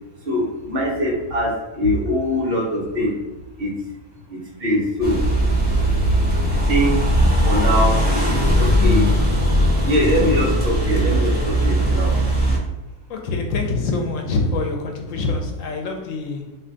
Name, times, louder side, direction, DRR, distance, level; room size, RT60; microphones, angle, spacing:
voice 1, 0.3-3.1 3.6-3.7 4.3-5.2 6.5-6.9 7.4-8.0 8.6-9.0 9.9-12.1, equal, 50° right, -3 dB, 0.9 m, -22 dB
sound 1, 5.0-12.6, equal, 10° right, 0.7 m, -19 dB
voice 2, 13.1-16.6, left 3 dB, 80° left, 4 dB, 1.0 m, -25 dB
2.5 x 2.2 x 3.7 m, 1.0 s
omnidirectional pair, 1.3 m